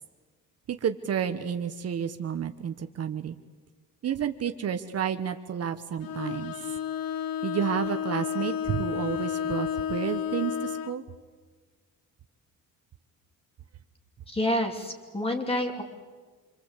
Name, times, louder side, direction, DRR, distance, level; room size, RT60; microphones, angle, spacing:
voice 1, 0.7-3.4 4.0-6.6 7.4-11.0, right 8 dB, 45° right, 8 dB, 1.1 m, -30 dB
Bowed string instrument, 6.0-11.0, left 8 dB, 75° left, 1.2 m, -31 dB
voice 2, 14.3-15.8, left 1 dB, 15° left, 4 dB, 3.0 m, -28 dB
27.5 x 25.5 x 8.2 m, 1.5 s
cardioid pair, 160°, 35 cm